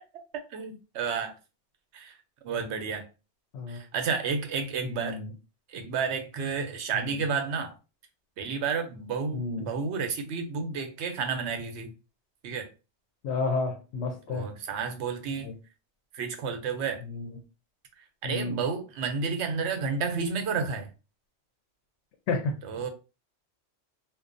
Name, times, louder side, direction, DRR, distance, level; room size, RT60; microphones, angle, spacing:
voice 1, 0.5-1.4 1.9-2.1 2.4-3.0 3.7-5.2 5.7-7.7 8.4-11.9 12.4-12.7 14.3-15.5 16.1-17.0 18.2-20.9 22.6-22.9, right 5 dB, 75° right, 0.9 m, -31 dB
voice 2, 4.8-5.3 6.9-7.1 9.3-9.7 13.2-14.5 15.4-15.5 17.0-17.3 18.2-18.6 22.3-22.5, left 3 dB, 80° left, 0.9 m, -31 dB
2.5 x 2.1 x 2.5 m
omnidirectional pair, 1.2 m